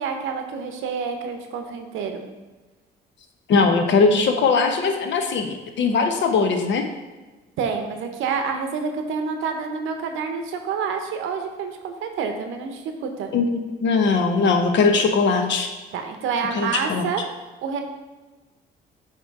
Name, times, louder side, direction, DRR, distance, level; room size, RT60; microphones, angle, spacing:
voice 1, 0.0-2.2 7.6-13.3 15.9-17.2 17.6-17.8, right 5 dB, 85° right, 5 dB, 0.8 m, -28 dB
voice 2, 3.5-6.8 13.3-15.7 16.5-17.0, left 4 dB, 65° left, 5 dB, 0.8 m, -20 dB
8.0 x 3.0 x 4.7 m, 1.2 s
cardioid pair, 90°, 20 cm